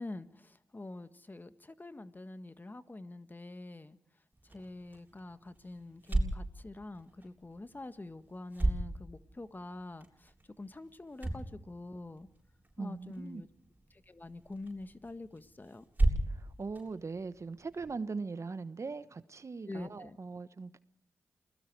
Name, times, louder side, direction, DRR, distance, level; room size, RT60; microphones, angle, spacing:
voice 1, 0.0-4.0 4.5-10.3 10.6-12.3 12.8-13.5 14.1-15.8 19.7-20.2, left 2 dB, 30° left, 1.5 m, -45 dB
sound 1, 4.3-17.9, right 2 dB, 25° right, 7.5 m, -38 dB
voice 2, 12.8-13.4 16.3-20.8, right 4 dB, 55° right, 1.1 m, -40 dB
28.5 x 20.5 x 4.8 m
cardioid pair, 45°, 6 cm